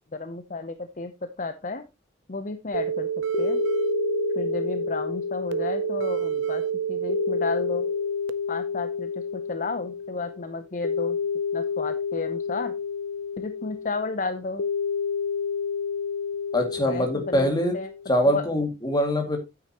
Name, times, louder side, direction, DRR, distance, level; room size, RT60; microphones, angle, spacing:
voice 1, 0.1-1.8 2.3-3.1 3.4-3.6 4.4-6.6 6.9-7.9 8.5-11.2 11.5-12.7 13.4-14.6 16.9-17.9 18.2-18.4, left 3 dB, 40° left, 9 dB, 0.7 m, -32 dB
sound 1, 2.7-18.1, left 6 dB, 75° left, 0.5 m, -30 dB
sound 2, 2.7-8.3, right 8 dB, 75° right, 0.6 m, -29 dB
voice 2, 16.5-17.7 18.1-19.4, equal, 20° left, 4 dB, 2.2 m, -23 dB
9.4 x 8.8 x 2.9 m, 0.23 s
head